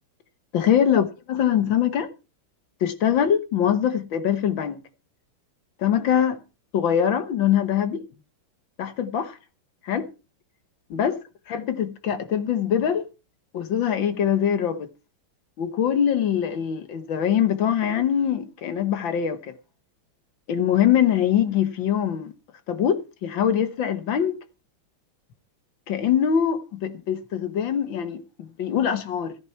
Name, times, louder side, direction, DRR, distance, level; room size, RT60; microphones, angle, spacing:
voice 1, 0.5-2.1 2.8-4.8 5.8-6.4 6.7-8.1 8.8-9.4 9.8-10.1 10.9-11.2 11.5-13.1 13.5-14.9 15.6-19.5 20.5-22.3 22.7-24.4 25.9-29.4, left 9 dB, 65° left, 1.8 m, -23 dB
14.0 x 10.5 x 4.4 m
omnidirectional pair, 2.4 m